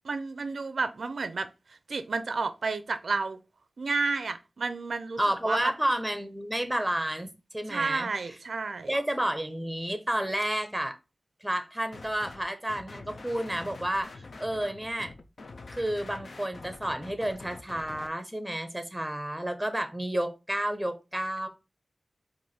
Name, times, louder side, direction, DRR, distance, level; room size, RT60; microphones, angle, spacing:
voice 1, 0.0-3.4 3.8-5.2 5.5-5.7 7.7-8.9, right 4 dB, 90° right, 0.4 m, -31 dB
voice 2, 5.2-8.1 8.9-11.0 11.4-15.1 15.7-21.5, right 1 dB, 10° right, 0.8 m, -31 dB
sound 1, 11.9-12.4 12.7-18.1, left 3 dB, 75° left, 0.5 m, -45 dB
4.6 x 2.5 x 4.2 m
wide cardioid pair, 70°, 0 cm